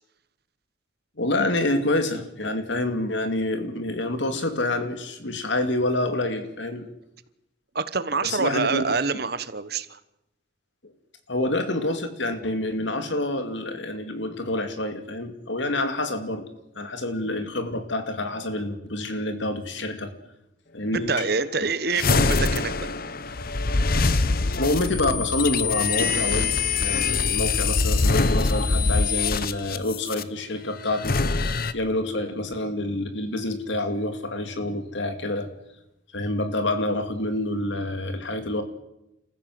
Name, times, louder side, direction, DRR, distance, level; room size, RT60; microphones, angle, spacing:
voice 1, 1.2-6.9 8.2-8.9 10.8-10.9 11.3-16.5 16.8-20.1 20.7-21.1 24.5-26.5 26.8-35.5 36.1-38.6, left 1 dB, 70° left, 8 dB, 2.5 m, -27 dB
voice 2, 7.7-10.0 21.1-22.9, right 4 dB, 55° right, 14 dB, 1.2 m, -26 dB
sound 1, 21.9-30.2 30.9-31.7, left 4 dB, 50° left, 0.9 m, -23 dB
sound 2, 26.0-28.4, right 2 dB, 75° right, 2.4 m, -37 dB
28.5 x 15.0 x 7.8 m, 0.91 s
head